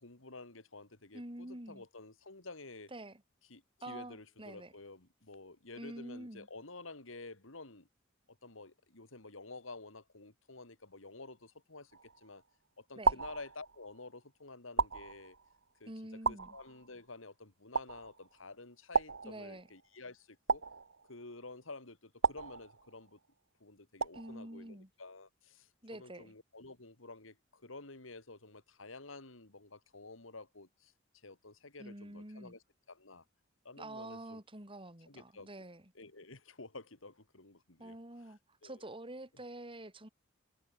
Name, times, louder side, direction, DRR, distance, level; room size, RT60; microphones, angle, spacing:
voice 1, 0.0-2.9 3.5-7.9 8.3-11.9 12.2-12.4 12.8-15.4 15.8-15.9 16.3-20.6 21.1-23.2 23.6-30.9 31.2-32.6 32.9-33.2 33.6-34.4 35.1-35.5 35.9-38.3 38.6-38.8, left 3 dB, 80° left, 3.0 m, -51 dB
voice 2, 1.1-1.8 2.9-3.2 3.8-4.7 5.8-6.5 13.0-13.1 15.9-16.6 19.2-19.7 24.1-24.9 25.8-26.3 31.8-32.5 33.8-35.8 37.8-40.1, right 1 dB, 25° right, 4.8 m, -47 dB
sound 1, 11.9-12.4 13.0-14.0 14.8-15.6 16.2-17.1 17.7-18.4 18.9-19.9 20.5-21.4 22.2-23.2 24.0-24.6, right 4 dB, 70° right, 1.6 m, -35 dB
head